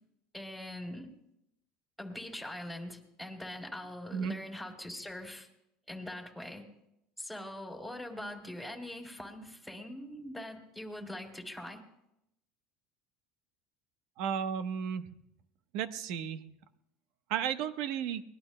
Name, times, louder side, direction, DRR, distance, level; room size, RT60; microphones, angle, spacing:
voice 1, 0.3-1.1 2.0-5.5 5.9-6.7 7.2-11.8, left 1 dB, ahead, 1 dB, 3.2 m, -42 dB
voice 2, 14.2-15.0 15.7-16.4 17.3-18.2, right 8 dB, 65° right, 10 dB, 1.0 m, -33 dB
23.5 x 20.5 x 2.2 m, 0.83 s
supercardioid pair, 120°, 0 cm